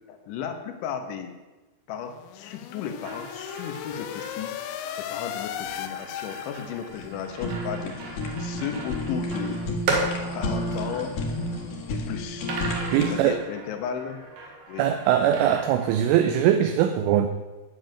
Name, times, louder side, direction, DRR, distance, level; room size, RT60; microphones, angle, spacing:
voice 1, 0.1-1.3 1.9-9.6 10.3-11.2 11.9-12.6 13.1-14.3 14.7-14.9, left 7 dB, 70° left, 7 dB, 3.4 m, -35 dB
sound 1, 2.1-7.1, left 11 dB, 90° left, 2.6 m, -36 dB
sound 2, 3.0-11.7 12.5-16.0, right 3 dB, 55° right, 3.7 m, -36 dB
Fire, 6.9-13.2, left 1 dB, 55° left, 3.2 m, -31 dB
voice 2, 12.9-13.4 14.8-17.3, right 10 dB, 80° right, 7 dB, 3.2 m, -21 dB
13.0 x 7.2 x 9.1 m, 1.2 s
omnidirectional pair, 6.0 m